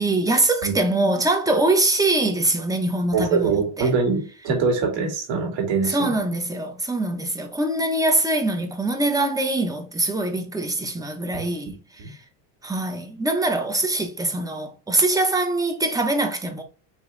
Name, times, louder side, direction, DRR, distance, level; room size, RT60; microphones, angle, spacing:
voice 1, 0.0-3.9 5.8-12.2 12.6-16.6, right 2 dB, 5° right, 1.0 m, -23 dB
voice 2, 3.1-6.1 11.3-11.5 12.0-12.1, right 5 dB, 65° right, 2.2 m, -23 dB
4.7 x 3.1 x 3.3 m
supercardioid pair, 110°, 48 cm